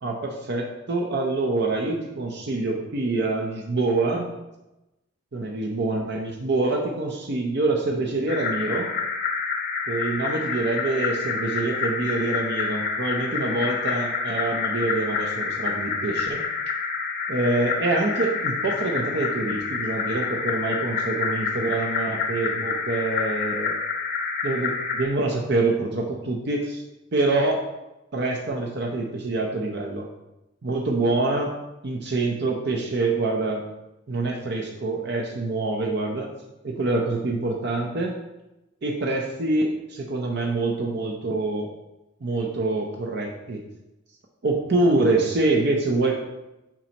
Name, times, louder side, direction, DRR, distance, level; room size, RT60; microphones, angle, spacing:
voice 1, 0.0-4.3 5.3-8.9 9.9-16.4 17.3-23.8 24.4-26.8 27.1-27.6 28.1-30.1 30.6-31.5 31.8-33.6 34.1-36.3 36.6-38.2 38.8-41.7 42.2-43.6 44.4-46.1, right 2 dB, 55° right, 0 dB, 0.7 m, -25 dB
sound 1, 8.3-25.0, left 5 dB, 50° left, 0.7 m, -28 dB
7.3 x 5.2 x 2.9 m, 0.97 s
head